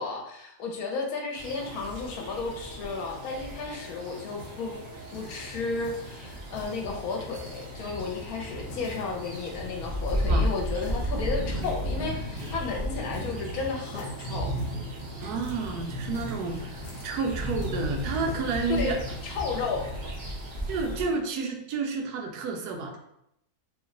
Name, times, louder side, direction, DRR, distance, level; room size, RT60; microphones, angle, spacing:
voice 1, 0.0-4.8 5.1-14.5 18.7-19.0 19.2-19.9, left 4 dB, 75° left, 1 dB, 1.0 m, -33 dB
sound 1, 1.4-21.0, equal, 65° right, 0.4 m, -34 dB
sound 2, 3.6-5.5 5.8-6.8 7.2-8.2 8.7-9.7 10.1-10.3 10.7-11.1 11.6-11.9 12.4-12.6 12.9-13.5 13.8-17.2 17.6-18.5 19.2-19.7, left 2 dB, 50° left, 1.1 m, -48 dB
voice 2, 15.2-19.0 20.7-23.0, right 4 dB, 80° right, 3 dB, 1.1 m, -30 dB
3.0 x 2.1 x 3.6 m, 0.78 s
omnidirectional pair, 1.7 m